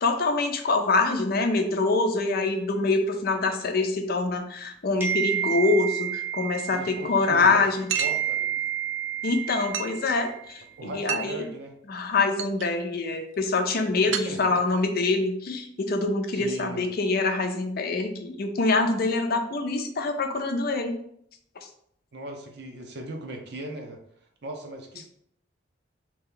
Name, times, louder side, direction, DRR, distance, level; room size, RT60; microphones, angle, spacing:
voice 1, 0.0-7.9 9.2-11.5 11.9-20.9 21.6-21.7, left 3 dB, 55° left, 6 dB, 0.5 m, -25 dB
sound 1, 5.0-7.6 8.0-10.5, right 9 dB, 10° right, 0.6 m, -30 dB
voice 2, 6.7-8.6 10.8-11.7 14.0-14.6 16.3-16.8 22.1-24.0 24.4-25.1, right 1 dB, 60° right, 3 dB, 0.7 m, -38 dB
sound 2, 7.9-8.3 9.7-10.0 11.1-11.4 12.0-12.1 12.4-12.7 14.1-14.8, right 9 dB, 90° right, 0.3 m, -31 dB
3.2 x 2.9 x 3.8 m, 0.68 s
head